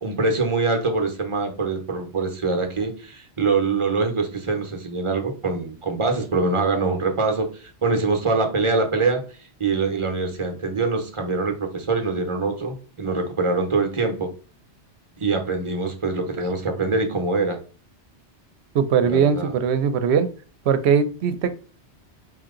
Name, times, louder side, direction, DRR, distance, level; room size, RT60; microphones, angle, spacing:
voice 1, 0.0-9.2 9.6-14.3 15.2-17.6 19.0-19.5, right 3 dB, 30° right, 4 dB, 0.9 m, -24 dB
voice 2, 18.7-20.3 20.7-21.5, right 7 dB, 75° right, 11 dB, 0.9 m, -20 dB
4.9 x 2.8 x 3.7 m, 0.39 s
omnidirectional pair, 1.1 m